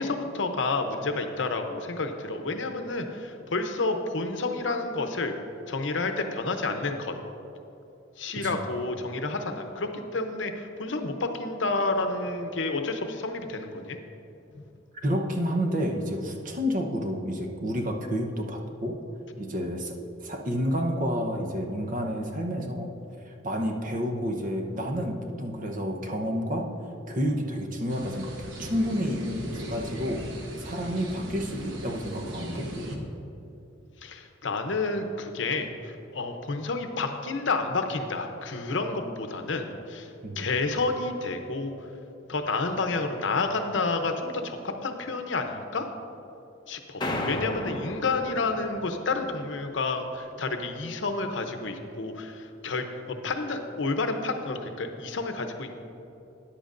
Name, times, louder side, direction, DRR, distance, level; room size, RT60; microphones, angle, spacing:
voice 1, 0.0-5.3 5.7-7.2 8.2-14.0 14.5-14.6 19.5-19.6 34.0-41.7 42.3-45.9 46.7-55.7, left 3 dB, 70° left, 6 dB, 0.8 m, -30 dB
voice 2, 14.9-19.0 19.4-22.9 23.3-26.7 27.1-30.2 30.6-32.7 40.2-40.4 47.0-47.3, equal, 45° right, 2 dB, 0.9 m, -30 dB
sound 1, 27.9-33.0, equal, 75° right, 1.1 m, -38 dB
sound 2, 47.0-49.4, left 1 dB, 20° left, 0.8 m, -34 dB
13.5 x 10.0 x 2.6 m, 2.8 s
head